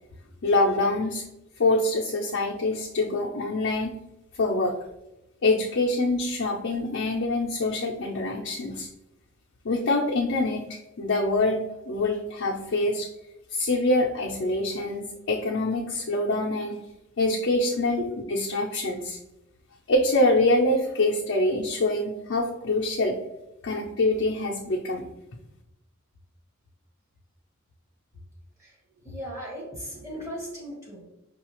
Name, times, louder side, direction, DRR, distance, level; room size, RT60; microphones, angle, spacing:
voice 1, 0.4-1.2 1.6-3.9 4.3-4.7 5.4-8.9 9.6-10.6 11.0-13.1 13.5-16.8 17.2-18.0 18.3-19.2 19.9-23.2 23.6-25.1, left 2 dB, 65° left, -3 dB, 0.5 m, -25 dB
voice 2, 29.0-31.0, right 1 dB, 15° right, -5 dB, 1.4 m, -36 dB
5.5 x 2.3 x 3.0 m, 0.89 s
head